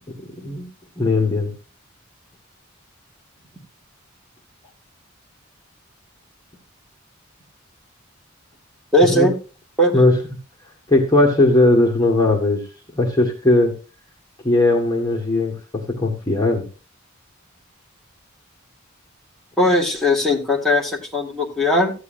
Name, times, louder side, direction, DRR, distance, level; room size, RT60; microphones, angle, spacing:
voice 1, 0.2-0.7 1.0-1.5 9.1-9.3 9.9-10.2 10.9-12.6 12.9-13.7 14.4-16.6, left 2 dB, 20° left, -1 dB, 1.7 m, -18 dB
voice 2, 8.9-9.3 9.8-9.9 19.6-21.9, left 1 dB, ahead, -2 dB, 1.9 m, -18 dB
14.0 x 9.6 x 2.6 m, 0.33 s
head